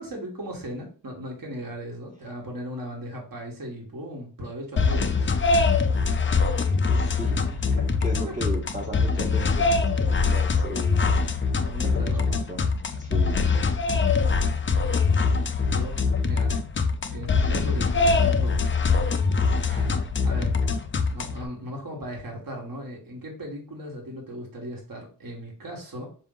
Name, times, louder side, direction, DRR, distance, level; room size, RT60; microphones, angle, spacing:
voice 1, 0.0-5.4 7.8-7.9 11.6-12.3 15.4-16.5 17.1-18.6 18.8-18.9 19.7-20.6 21.1-26.1, equal, 55° right, -1 dB, 1.2 m, -37 dB
sound 1, 4.8-21.5, left 4 dB, 30° left, 0.4 m, -23 dB
voice 2, 6.6-11.3 11.8-13.5, right 1 dB, 20° right, -2 dB, 0.7 m, -37 dB
4.0 x 2.5 x 3.7 m, 0.38 s
wide cardioid pair, 70°, 41 cm